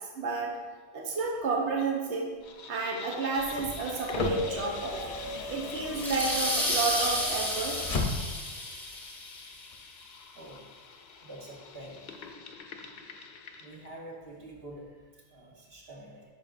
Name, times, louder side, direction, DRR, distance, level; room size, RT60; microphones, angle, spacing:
voice 1, 0.2-0.5 0.9-2.3 2.7-5.1 5.5-7.8, right 3 dB, 80° right, -1 dB, 1.1 m, -31 dB
sound 1, 2.4-13.9, left 5 dB, 70° left, 0.8 m, -46 dB
sound 2, 3.4-8.5 9.7-9.8, left 2 dB, 40° left, 0.6 m, -35 dB
sound 3, 6.0-9.4, equal, ahead, 0.7 m, -31 dB
voice 2, 11.2-12.0 13.6-14.9 15.3-16.2, right 1 dB, 60° right, -2 dB, 1.5 m, -46 dB
11.0 x 5.0 x 2.5 m, 1.4 s
omnidirectional pair, 1.1 m